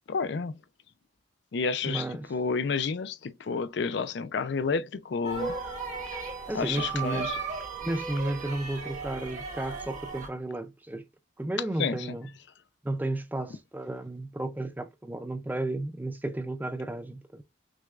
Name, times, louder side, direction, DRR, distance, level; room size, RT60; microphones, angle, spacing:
voice 1, 0.1-0.6 1.5-5.6 6.5-7.4 11.8-12.2, left 5 dB, 65° left, 0.4 m, -30 dB
voice 2, 1.8-2.3 6.5-7.3 7.8-11.1 11.4-12.3 12.8-17.4, right 1 dB, 10° right, 0.3 m, -33 dB
sound 1, 5.2-10.3, right 4 dB, 40° right, 1.1 m, -36 dB
6.1 x 2.2 x 2.4 m
head